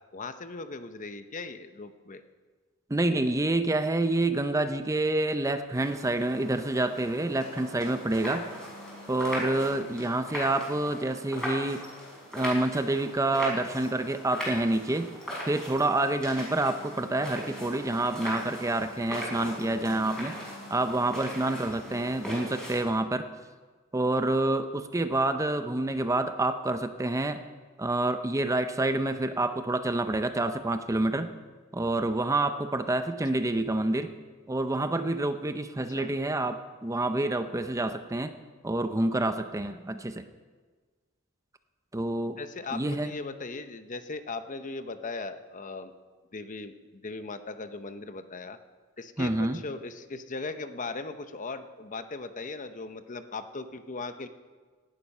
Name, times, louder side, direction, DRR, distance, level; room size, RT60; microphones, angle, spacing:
voice 1, 0.1-2.2 21.9-22.0 35.9-36.1 42.4-45.9 46.3-48.6 49.0-54.3, left 3 dB, 40° left, 10 dB, 0.8 m, -38 dB
voice 2, 2.9-8.5 9.1-11.8 12.3-15.1 15.4-20.3 20.7-23.3 23.9-27.4 27.8-31.3 31.7-34.1 34.5-38.3 38.6-40.3 41.9-42.4 42.7-43.1 49.2-49.6, right 2 dB, 15° right, 9 dB, 0.6 m, -28 dB
sound 1, 5.7-22.8, equal, 5° left, 5.8 m, -39 dB
17.5 x 12.0 x 5.5 m, 1.4 s
head